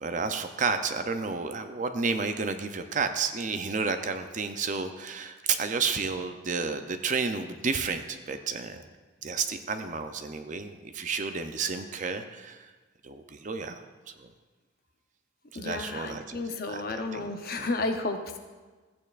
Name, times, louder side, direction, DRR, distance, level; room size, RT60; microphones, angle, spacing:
voice 1, 0.0-8.8 9.2-12.7 13.0-13.8 14.2-14.3 15.5-17.3 17.6-17.7, right 5 dB, 40° right, 7 dB, 0.5 m, -31 dB
voice 2, 15.5-18.4, left 3 dB, 45° left, 5 dB, 0.7 m, -32 dB
15.0 x 8.6 x 2.5 m, 1.3 s
head